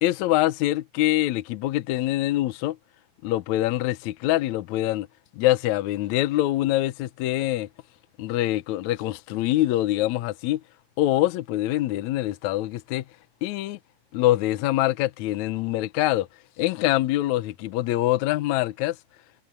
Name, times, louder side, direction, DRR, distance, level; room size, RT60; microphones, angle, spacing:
voice 1, 0.0-2.8 3.2-5.1 5.3-7.7 8.2-10.6 11.0-13.0 13.4-13.8 14.1-16.3 16.6-19.0, left 15 dB, 75° left, 1.7 m, -24 dB
omnidirectional pair, 4.3 m